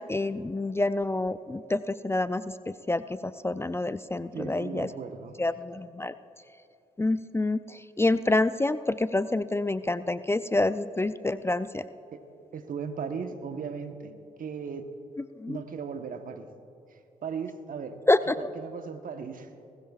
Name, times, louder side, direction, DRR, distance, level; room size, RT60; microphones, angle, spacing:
voice 1, 0.0-4.9 5.4-6.1 7.0-11.8 15.2-15.6 18.1-18.3, left 2 dB, 15° left, 13 dB, 0.4 m, -27 dB
voice 2, 4.3-5.4 12.1-12.2 12.5-14.1 14.4-14.8 15.5-16.5 16.9-18.0 18.4-19.5, right 6 dB, 55° right, 7 dB, 1.2 m, -37 dB
20.0 x 16.0 x 2.4 m, 2.7 s
hypercardioid pair, 45°, 16 cm